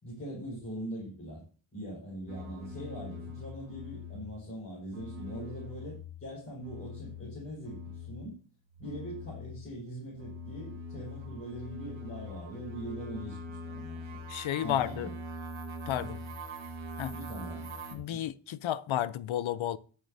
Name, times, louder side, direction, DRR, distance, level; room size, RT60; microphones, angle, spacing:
voice 1, 0.0-1.4 1.7-8.4 8.8-14.2 14.6-15.2 15.9-16.2 17.1-17.8 18.1-18.2, right 1 dB, 30° left, 5.2 m, -42 dB
sound 1, 2.3-4.5 4.8-8.3 8.6-18.0, left 1 dB, 75° right, 2.0 m, -43 dB
voice 2, 14.3-15.1 15.9-16.2 17.0-17.1 17.9-19.8, left 11 dB, 85° left, 0.7 m, -32 dB
19.0 x 7.1 x 2.7 m
wide cardioid pair, 155°, 46 cm